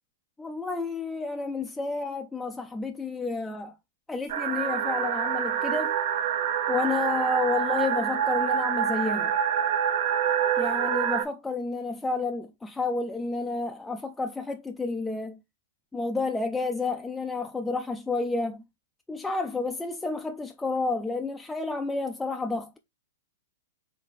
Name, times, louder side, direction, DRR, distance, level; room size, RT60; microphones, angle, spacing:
voice 1, 0.4-3.7 4.1-6.0 6.7-9.3 10.6-15.4 15.9-18.6 19.1-22.8, left 3 dB, 10° left, 0.4 m, -30 dB
sound 1, 4.3-11.2, right 8 dB, 60° right, 0.7 m, -26 dB
4.0 x 3.5 x 3.1 m
hypercardioid pair, 115°, 0 cm